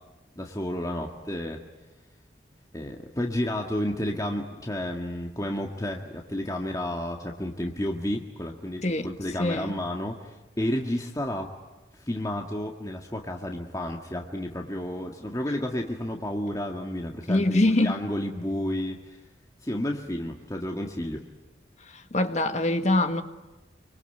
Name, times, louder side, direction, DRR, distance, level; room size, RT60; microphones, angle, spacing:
voice 1, 0.4-1.6 2.7-11.5 12.0-19.2 19.6-21.2, left 1 dB, 20° left, 1.8 m, -31 dB
voice 2, 9.4-9.7 17.3-18.0 21.8-23.2, left 1 dB, 40° left, 1.6 m, -24 dB
26.0 x 24.5 x 9.2 m
head